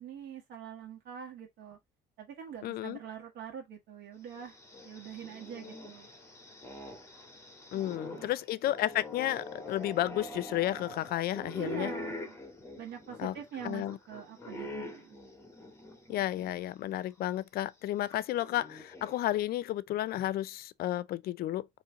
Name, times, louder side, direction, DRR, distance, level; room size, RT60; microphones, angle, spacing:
voice 1, 0.0-1.8 2.2-4.6 4.8-6.1 7.7-8.3 11.6-12.3 12.8-15.1, right 8 dB, 80° right, 1.3 m, -44 dB
voice 2, 2.6-3.0 7.7-11.9 13.2-13.3 13.6-14.0 16.1-21.7, left 14 dB, 65° left, 0.5 m, -32 dB
sound 1, 4.3-16.5 16.9-17.0 18.1-19.4, left 2 dB, 15° left, 1.8 m, -45 dB
4.4 x 3.1 x 3.7 m
cardioid pair, 110°, 17 cm